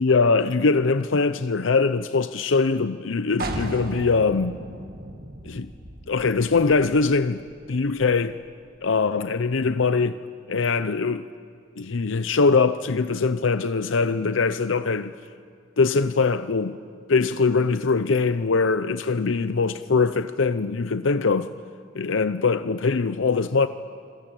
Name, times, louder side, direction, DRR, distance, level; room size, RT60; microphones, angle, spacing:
voice 1, 0.0-4.6 5.4-5.7 6.1-7.4 7.7-8.4 8.8-10.2 10.5-11.3 11.8-15.1 15.8-16.8 17.1-21.5 21.9-23.7, left 4 dB, 85° left, 0.7 m, -22 dB
sound 1, 3.4-8.9, right 1 dB, 50° right, 2.0 m, -37 dB
26.5 x 22.0 x 9.0 m
head